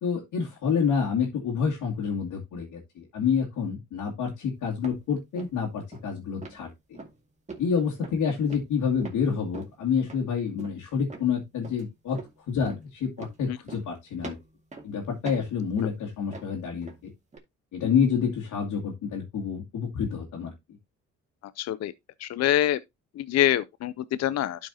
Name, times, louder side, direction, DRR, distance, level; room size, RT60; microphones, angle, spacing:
voice 1, 0.0-6.7 7.6-12.2 12.5-14.4 14.8-16.9 17.7-20.5, left 6 dB, 80° left, 2.4 m, -28 dB
sound 1, 4.8-5.1 5.4-5.6 5.9-6.1 6.4-6.6 6.9-7.2 7.5-7.7 8.0-8.2 8.5-9.2 9.5-9.8 10.1-10.2 10.6-10.8 11.1-11.3 11.6-11.8 12.2-12.4 12.7-12.8 13.2-13.4 13.7-13.9 14.2-14.9 15.3-16.0 16.3-17.0 17.3-17.4, right 3 dB, 25° right, 2.2 m, -43 dB
voice 2, 21.6-21.9 22.2-22.8 23.2-24.7, left 12 dB, 60° left, 0.5 m, -25 dB
11.5 x 5.1 x 2.8 m
cardioid pair, 90°, 30 cm